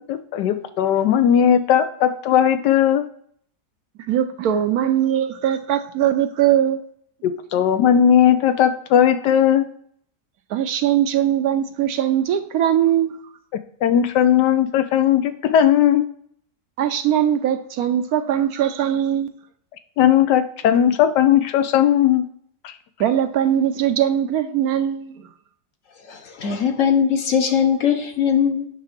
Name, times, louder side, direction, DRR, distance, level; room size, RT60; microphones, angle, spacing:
voice 1, 0.1-3.0 7.2-9.7 13.8-16.0 20.0-22.2 22.6-22.7, left 9 dB, 85° left, 10 dB, 1.3 m, -17 dB
voice 2, 4.1-6.8 10.5-13.2 16.8-19.3 23.0-25.3, right 10 dB, 70° right, 9 dB, 1.0 m, -20 dB
voice 3, 26.1-28.7, left 7 dB, 55° left, 5 dB, 1.2 m, -20 dB
8.6 x 3.4 x 5.9 m, 0.65 s
omnidirectional pair, 1.8 m